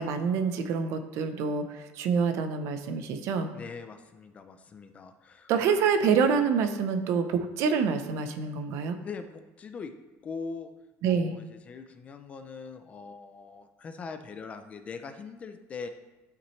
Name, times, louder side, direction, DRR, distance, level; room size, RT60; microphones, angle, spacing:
voice 1, 0.0-3.5 5.5-9.0 11.0-11.4, right 6 dB, 50° right, 8 dB, 0.7 m, -27 dB
voice 2, 3.5-5.5 9.0-9.9 10.2-10.7 11.0-15.9, left 5 dB, 20° left, 8 dB, 0.4 m, -41 dB
12.0 x 5.9 x 3.2 m, 1.2 s
cardioid pair, 180°, 6 cm